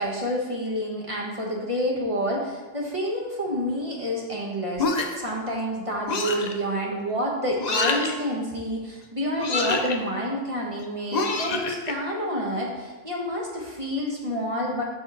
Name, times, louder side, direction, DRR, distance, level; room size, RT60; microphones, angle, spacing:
voice 1, 0.0-14.8, equal, 25° right, -2 dB, 1.2 m, -28 dB
sound 1, 4.8-5.3 6.1-6.5 7.6-8.1 9.4-10.0 11.1-11.9, left 3 dB, 45° left, 0.6 m, -26 dB
7.1 x 5.1 x 3.8 m, 1.3 s
omnidirectional pair, 1.4 m